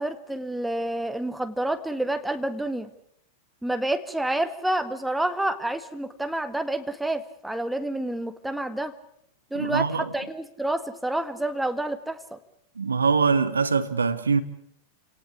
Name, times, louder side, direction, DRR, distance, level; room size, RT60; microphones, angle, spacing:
voice 1, 0.0-2.9 3.6-8.9 9.5-12.4, right 1 dB, 5° right, 1.8 m, -28 dB
voice 2, 9.5-10.0 12.8-14.4, right 5 dB, 75° right, 1.6 m, -23 dB
29.5 x 18.5 x 8.6 m
figure-of-eight pair, 90°, 0 cm